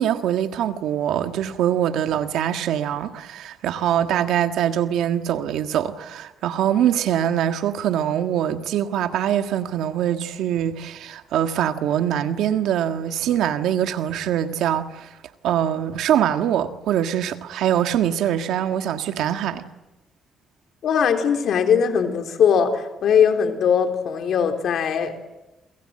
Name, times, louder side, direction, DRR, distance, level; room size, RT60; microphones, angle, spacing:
voice 1, 0.0-15.1 15.4-19.6, right 10 dB, 85° right, 1.6 m, -23 dB
voice 2, 20.8-25.2, left 7 dB, 70° left, 3.7 m, -20 dB
28.5 x 24.0 x 7.8 m
cardioid pair, 90°, 0 cm